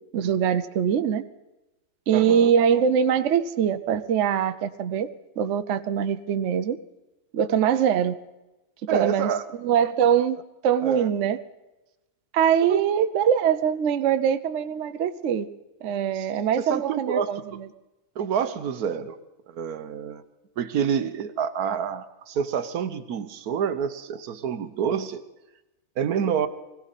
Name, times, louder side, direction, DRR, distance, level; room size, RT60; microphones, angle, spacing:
voice 1, 0.1-1.2 2.1-5.1 5.4-6.8 7.3-8.1 8.9-9.3 9.6-11.4 12.3-15.5 15.8-17.7, right 8 dB, 60° right, 10 dB, 0.9 m, -23 dB
voice 2, 2.1-2.5 8.9-9.4 10.8-11.1 12.7-12.8 16.2-16.3 16.6-17.3 18.2-19.2 19.5-20.2 20.6-25.2 26.0-26.5, right 7 dB, 75° right, 11 dB, 1.3 m, -27 dB
21.0 x 16.5 x 4.1 m, 1.0 s
omnidirectional pair, 1.6 m